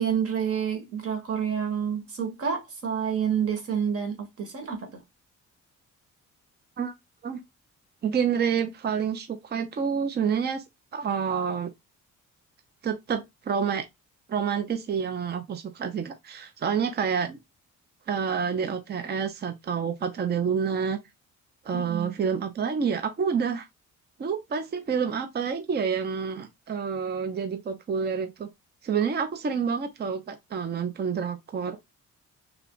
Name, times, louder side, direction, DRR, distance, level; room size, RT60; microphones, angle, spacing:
voice 1, 0.0-5.0 21.7-22.1, right 7 dB, 50° right, 1.4 m, -28 dB
voice 2, 8.0-10.6 10.9-11.7 12.8-13.9 14.3-17.4 18.1-21.0 21.6-23.7 24.2-28.5 28.8-31.8, right 6 dB, 35° right, 0.6 m, -28 dB
3.4 x 2.4 x 3.7 m
cardioid pair, 90°, 30 cm